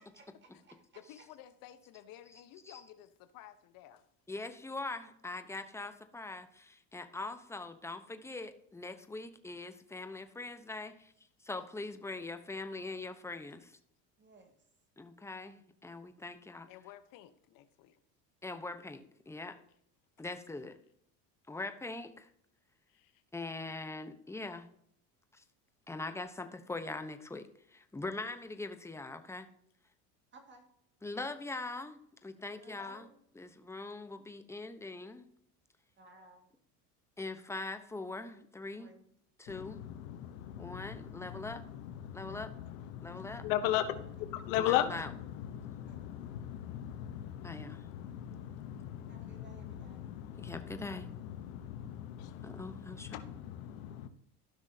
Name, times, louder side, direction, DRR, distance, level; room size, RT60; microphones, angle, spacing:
voice 1, 0.0-1.3 14.2-14.6 30.3-30.7 32.4-33.1 36.0-36.4 38.8-39.1 42.2-42.7 43.0-43.4 45.9-46.3 49.1-50.0, right 2 dB, 30° right, 2.1 m, -60 dB
voice 2, 0.9-4.1 16.7-18.0 22.9-23.2 48.4-48.7, left 12 dB, 60° left, 1.0 m, -54 dB
voice 3, 4.3-11.1 11.4-13.8 15.0-16.7 18.4-19.6 20.2-20.8 21.5-22.3 23.3-24.7 25.3-25.4 25.9-29.5 31.0-33.1 33.3-35.2 37.2-38.9 39.4-39.8 40.6-41.6 42.1-42.5 43.0-43.4 44.6-45.1 47.4-47.8 50.3-51.1 52.4-53.1, left 2 dB, 5° left, 0.9 m, -42 dB
voice 4, 39.5-54.1, left 12 dB, 85° left, 1.1 m, -38 dB
14.5 x 6.1 x 2.8 m
supercardioid pair, 110°, 39 cm